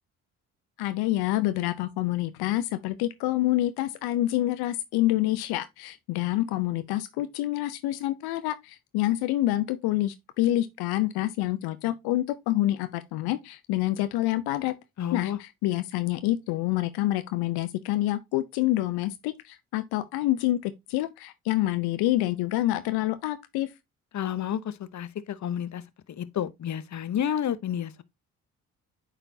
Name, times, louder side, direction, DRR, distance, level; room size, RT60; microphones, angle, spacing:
voice 1, 0.8-14.7 15.1-23.7, left 15 dB, 75° left, 0.7 m, -27 dB
voice 2, 15.0-15.4 24.1-25.8 26.2-28.0, left 9 dB, 45° left, 0.8 m, -30 dB
8.9 x 4.2 x 2.7 m
hypercardioid pair, 45°, 39 cm